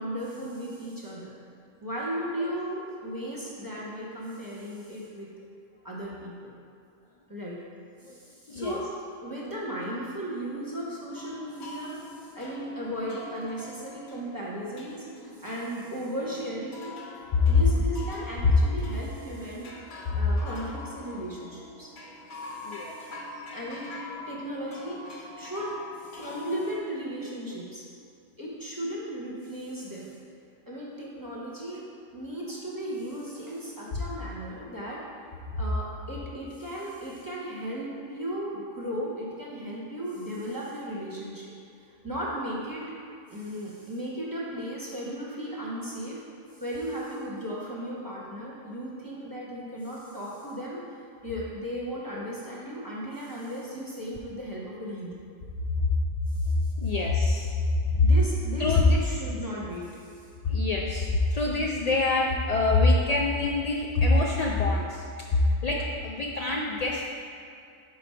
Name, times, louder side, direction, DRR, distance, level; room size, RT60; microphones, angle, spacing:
voice 1, 0.0-5.3 5.8-6.5 7.3-7.6 8.0-8.9 9.2-16.9 17.5-19.7 20.1-21.9 22.6-22.8 23.5-25.7 26.0-27.8 28.4-30.1 30.7-31.8 32.1-35.0 35.6-41.5 42.0-42.8 43.3-46.2 46.6-50.8 51.2-55.2 56.4-56.5 58.0-60.0, equal, 20° right, -5 dB, 0.9 m, -36 dB
voice 2, 8.5-8.8 17.3-17.6 22.6-22.9 55.8-55.9 56.8-57.6 57.9-58.1 58.6-59.0 60.4-65.0 65.3-67.1, left 3 dB, 85° left, -2 dB, 0.3 m, -24 dB
sound 1, 11.1-26.8, left 2 dB, 65° left, 1.0 m, -44 dB
4.6 x 3.8 x 5.6 m, 2.5 s
omnidirectional pair, 1.2 m